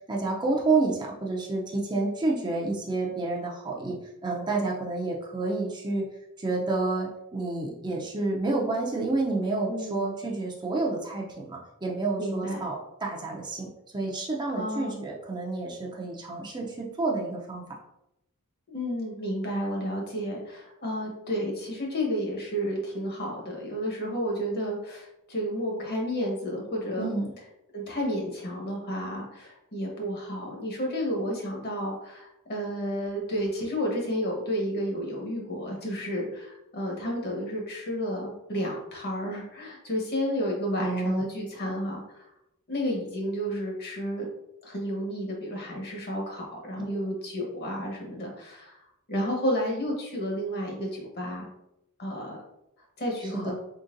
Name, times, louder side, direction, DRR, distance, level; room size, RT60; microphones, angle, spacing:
voice 1, 0.1-6.0 6.4-17.6 27.0-27.3 40.8-41.2 46.8-47.0 53.3-53.5, right 3 dB, 20° right, -2 dB, 0.5 m, -29 dB
voice 2, 9.7-10.0 12.2-12.7 14.5-15.1 18.7-27.1 27.7-42.3 42.7-44.3 44.6-48.8 49.1-51.5 52.0-52.4 53.0-53.5, equal, 45° left, -1 dB, 1.1 m, -31 dB
3.8 x 3.5 x 2.6 m, 0.83 s
head